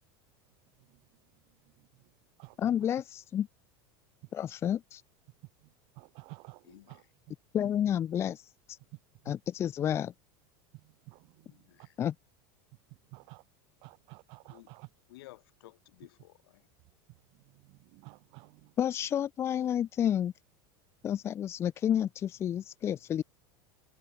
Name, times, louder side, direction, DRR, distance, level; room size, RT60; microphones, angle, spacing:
voice 1, 2.6-3.5 4.3-5.0 7.5-8.4 8.7-8.8 9.3-10.1 12.0-12.1 18.8-20.3 21.0-23.2, left 10 dB, 20° left, 0.7 m, -30 dB
voice 2, 6.0-6.6 6.9-7.0 11.1-11.2 13.1-13.4 13.8-14.9 17.9-18.6, right 28 dB, 45° right, 1.7 m, -50 dB
voice 3, 6.6-7.1 11.5-12.0 14.4-14.7 15.1-16.7, left 17 dB, 80° left, 5.4 m, -55 dB
supercardioid pair, 170°, 12 cm